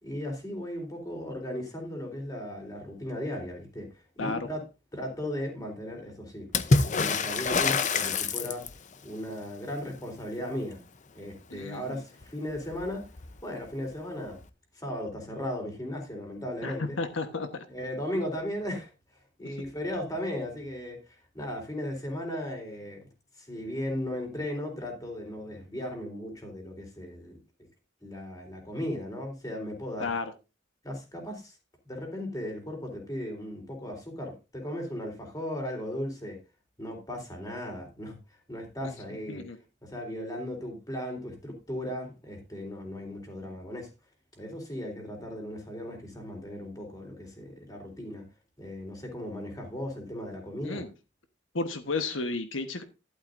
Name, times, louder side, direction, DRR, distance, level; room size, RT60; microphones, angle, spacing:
voice 1, 0.0-3.9 4.2-4.6 4.9-6.5 6.8-8.7 9.0-10.8 11.1-13.0 13.4-14.4 14.7-17.0 17.7-18.9 19.4-23.0 23.4-27.4 28.0-30.1 30.8-31.6 31.8-36.4 36.8-38.2 38.5-39.4 39.8-43.9 44.4-48.2 48.6-50.8, left 1 dB, 20° left, 3.7 m, -36 dB
Water / Splash splatter, 6.5-8.9 12.2-12.3 12.6-13.3 14.4-14.5, left 4 dB, 40° left, 0.7 m, -26 dB
voice 2, 11.5-12.0 16.6-17.6 19.4-19.5 30.0-30.3 38.8-39.6 50.6-50.9 51.5-52.8, left 3 dB, 85° left, 1.2 m, -33 dB
12.0 x 12.0 x 2.6 m
head